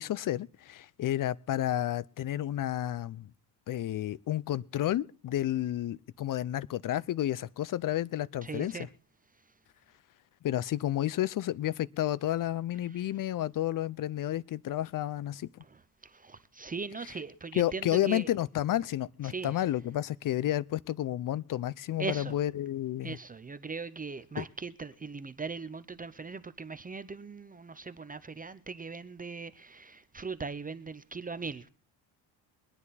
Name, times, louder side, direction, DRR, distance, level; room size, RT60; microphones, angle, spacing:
voice 1, 0.0-3.3 3.7-8.7 10.4-15.5 17.6-23.2 24.4-24.5, left 13 dB, 45° left, 0.6 m, -31 dB
voice 2, 8.4-8.9 12.9-13.1 15.6-18.3 19.2-19.6 22.0-22.4 23.0-31.7, right 4 dB, 20° right, 0.7 m, -40 dB
23.0 x 9.8 x 4.1 m
cardioid pair, 110°, 44 cm